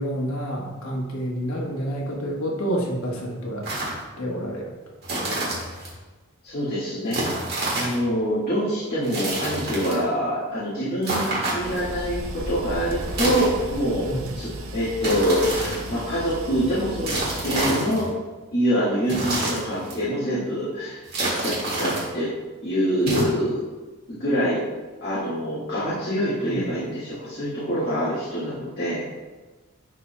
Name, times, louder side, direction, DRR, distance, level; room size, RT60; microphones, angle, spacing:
voice 1, 0.0-3.7 4.2-4.8 5.1-5.7 14.0-14.3 26.5-26.7, equal, 75° left, -2 dB, 1.3 m, -29 dB
sound 1, 3.6-4.0 5.0-5.9 7.1-8.0 9.0-10.0 11.0-11.9 13.0-13.9 15.0-16.0 17.0-18.1 19.0-20.0 21.0-22.1 23.0-23.2, right 2 dB, 45° right, 1.9 m, -28 dB
voice 2, 6.4-7.4 7.7-14.1 14.3-18.1 18.5-22.3 22.6-23.6 24.1-24.6 25.0-29.0, equal, 45° left, -11 dB, 1.7 m, -25 dB
sound 2, 11.6-17.7, right 1 dB, 65° right, 0.7 m, -35 dB
10.5 x 4.3 x 2.2 m, 1.2 s
head